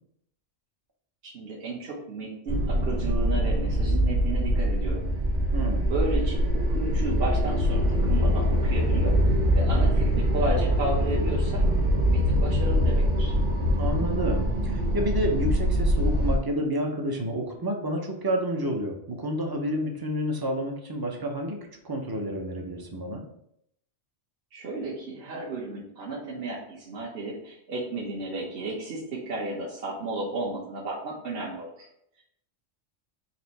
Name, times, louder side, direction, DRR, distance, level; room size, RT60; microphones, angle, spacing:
voice 1, 1.2-5.0 5.9-6.4 6.7-9.1 9.5-11.6 12.1-13.4 24.5-31.9, right 2 dB, 60° right, -5 dB, 1.1 m, -33 dB
sound 1, 2.5-16.4, equal, 85° right, 1.4 m, -23 dB
voice 2, 5.5-5.9 13.8-21.6 21.8-23.2, equal, 30° right, 2 dB, 0.5 m, -29 dB
4.2 x 2.6 x 4.1 m, 0.74 s
omnidirectional pair, 1.2 m